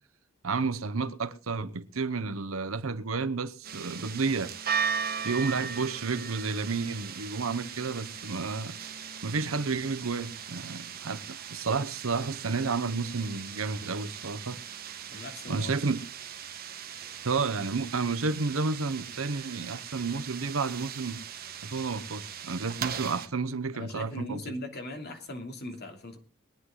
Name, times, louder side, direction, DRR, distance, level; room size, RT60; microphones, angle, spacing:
voice 1, 0.4-4.5 5.2-8.8 9.2-14.6 15.1-16.0 17.2-21.2 21.6-24.4, right 4 dB, 75° right, 0.9 m, -31 dB
sound 1, 3.6-23.3, right 7 dB, 45° right, 1.3 m, -38 dB
voice 2, 15.1-15.7 23.7-26.2, left 1 dB, 50° left, 2.8 m, -39 dB
22.0 x 9.8 x 3.8 m
head